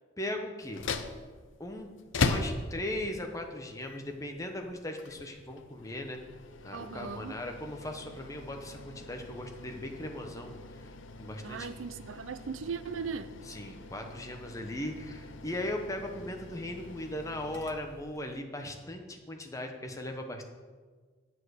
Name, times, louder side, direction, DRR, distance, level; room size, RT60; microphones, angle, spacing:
voice 1, 0.2-0.9 1.6-1.9 2.2-6.2 6.6-10.5 11.2-11.8 13.5-20.4, left 1 dB, 15° left, 1.0 m, -38 dB
sound 1, 0.6-18.4, left 3 dB, 75° left, 0.7 m, -40 dB
voice 2, 6.7-7.4 11.4-13.3, right 5 dB, 85° right, 0.5 m, -38 dB
8.8 x 7.4 x 6.5 m
head